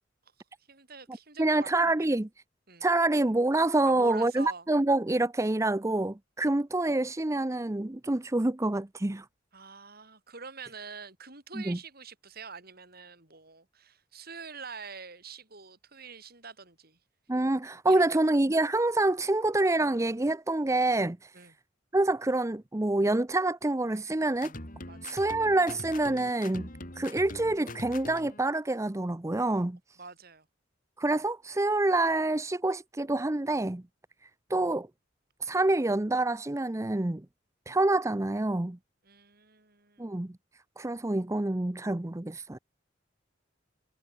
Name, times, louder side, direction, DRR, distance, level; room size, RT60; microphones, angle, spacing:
voice 1, 0.7-2.1 2.7-2.9 3.9-4.7 9.5-17.0 17.8-18.2 21.3-21.5 24.8-25.2 30.0-30.5 39.0-40.2, right 5 dB, 55° right, 8.0 m, -46 dB
voice 2, 1.4-2.3 2.8-9.3 11.5-11.8 17.3-21.3 21.9-24.5 25.0-26.7 27.0-29.8 31.0-33.8 34.2-34.9 35.4-37.3 37.7-38.8 40.0-40.3 40.8-42.6, right 2 dB, 15° right, 0.6 m, -27 dB
sound 1, 24.4-28.4, left 2 dB, 45° left, 5.8 m, -43 dB
head